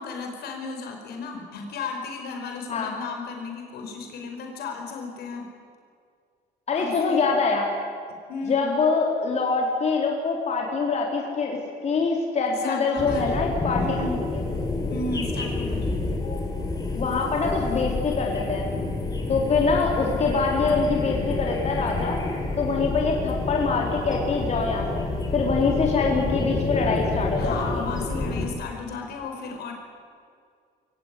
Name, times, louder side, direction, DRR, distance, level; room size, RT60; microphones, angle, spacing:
voice 1, 0.0-5.5 6.7-7.3 8.3-8.6 12.6-13.3 13.8-14.2 14.9-15.9 27.4-29.7, left 4 dB, 70° left, 3 dB, 5.2 m, -34 dB
voice 2, 6.7-7.6 8.5-11.6 11.8-13.8 14.3-14.4 16.2-16.4 17.0-18.7 19.3-22.2 22.6-27.8, left 4 dB, 40° left, 0 dB, 3.8 m, -24 dB
sound 1, 13.0-28.5, left 2 dB, 20° left, 4.3 m, -28 dB
23.0 x 17.0 x 9.9 m, 2.2 s
cardioid pair, 110°, 17 cm